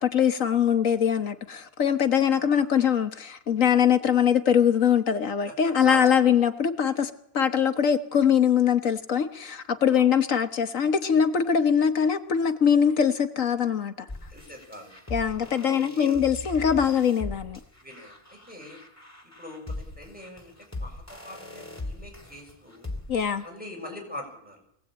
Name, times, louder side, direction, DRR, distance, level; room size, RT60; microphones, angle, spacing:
voice 1, 0.0-14.1 15.1-17.6 23.1-23.4, left 8 dB, 60° left, 9 dB, 1.5 m, -22 dB
voice 2, 2.4-2.7 5.5-6.3 9.9-10.1 14.3-14.9 15.6-16.2 17.8-18.8 19.4-22.9 23.4-24.6, left 1 dB, 5° right, 2 dB, 6.1 m, -42 dB
sound 1, 14.1-23.5, left 2 dB, 10° left, 3.0 m, -40 dB
24.0 x 17.5 x 8.8 m, 0.74 s
omnidirectional pair, 1.6 m